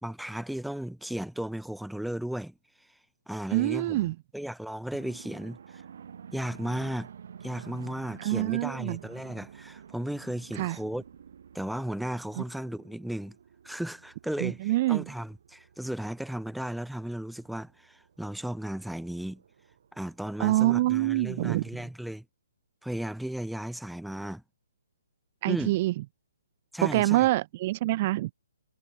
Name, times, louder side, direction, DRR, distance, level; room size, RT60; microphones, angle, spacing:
voice 1, 0.0-2.5 3.3-5.8 6.3-7.1 7.4-11.0 11.5-13.4 13.6-19.4 19.9-22.2 22.8-24.4 25.5-25.8 26.7-27.3, right 1 dB, ahead, 1.4 m, -35 dB
voice 2, 3.5-4.1 8.2-9.0 10.5-10.8 12.4-12.5 14.4-15.0 20.4-21.6 25.4-25.9 26.8-28.3, right 17 dB, 35° right, 0.4 m, -25 dB
sound 1, 5.0-20.6, right 8 dB, 60° right, 4.6 m, -51 dB
hypercardioid pair, 145°, 0 cm